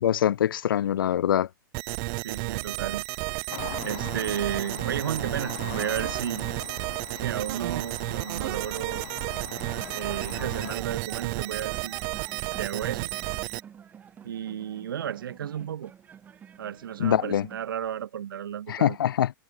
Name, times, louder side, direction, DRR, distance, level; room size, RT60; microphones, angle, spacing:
voice 1, 0.0-1.5 17.0-17.5 18.7-19.3, left 10 dB, 85° left, 0.5 m, -24 dB
sound 1, 1.7-13.6, right 38 dB, 30° right, 0.7 m, -32 dB
voice 2, 2.2-3.1 3.8-6.5 7.1-9.1 9.9-12.0 12.6-13.1 14.2-15.9 16.6-19.0, right 9 dB, 80° right, 1.3 m, -33 dB
sound 2, 3.5-10.8, left 22 dB, 40° left, 3.7 m, -41 dB
sound 3, 9.6-17.6, right 8 dB, 15° right, 6.3 m, -48 dB
hypercardioid pair, 160°, 11 cm